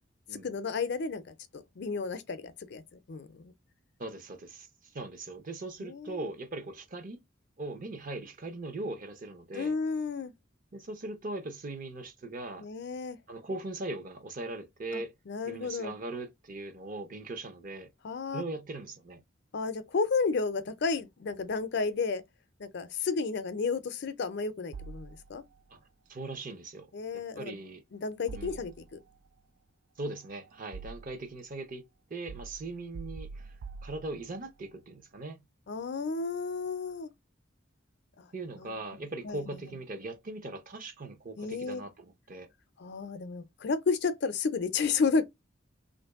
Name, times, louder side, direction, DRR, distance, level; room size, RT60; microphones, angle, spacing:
voice 1, 0.4-3.5 5.8-6.1 9.5-10.3 12.6-13.2 14.9-15.9 18.0-18.4 19.5-22.2 22.6-25.4 26.9-27.6 27.9-29.0 35.7-37.1 38.2-38.3 38.5-38.8 39.2-39.7 41.4-41.8 42.8-45.2, left 4 dB, 60° left, 0.5 m, -32 dB
voice 2, 4.0-7.2 7.6-9.7 10.7-12.7 13.3-15.1 15.4-17.9 18.3-19.2 25.7-25.8 26.1-26.9 27.4-27.8 28.3-28.6 30.0-31.8 32.1-33.5 33.8-35.4 38.3-42.5, right 2 dB, 45° right, 0.7 m, -40 dB
sound 1, 24.7-25.6 28.3-29.2 30.1-31.4 32.3-34.5, right 4 dB, 75° right, 0.3 m, -45 dB
3.1 x 2.6 x 3.5 m
head